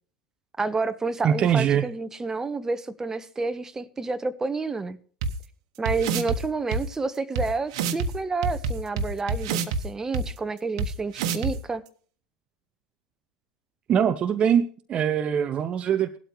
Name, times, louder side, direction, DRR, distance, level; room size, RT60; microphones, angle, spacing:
voice 1, 0.6-5.0 5.8-11.8, right 4 dB, 15° right, 1.1 m, -29 dB
voice 2, 1.2-1.8 13.9-16.2, right 8 dB, 30° right, 0.8 m, -22 dB
sound 1, 5.2-5.3 5.8-6.4 6.7-6.8 7.3-7.4 7.7-8.1 8.4-9.8 10.1-10.2 10.8-10.9 11.1-11.5, right 5 dB, 55° right, 1.4 m, -26 dB
18.0 x 12.5 x 3.2 m
figure-of-eight pair, 75°, 4 cm